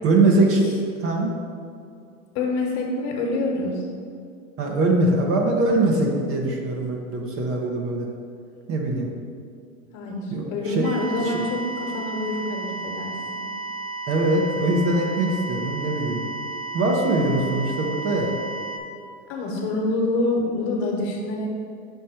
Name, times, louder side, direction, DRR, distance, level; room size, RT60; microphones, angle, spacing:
voice 1, 0.0-0.7 1.0-1.3 4.6-8.1 8.7-9.1 10.3-10.9 11.2-11.4 14.1-16.2 16.7-18.3, right 2 dB, 30° right, 0 dB, 0.9 m, -22 dB
voice 2, 2.3-3.8 9.9-13.2 17.3-17.4 19.3-21.5, left 2 dB, 50° left, 0 dB, 1.3 m, -26 dB
sound 1, 10.8-18.8, right 3 dB, 70° right, 0.9 m, -33 dB
5.4 x 4.2 x 4.4 m, 2.3 s
hypercardioid pair, 110°, 43 cm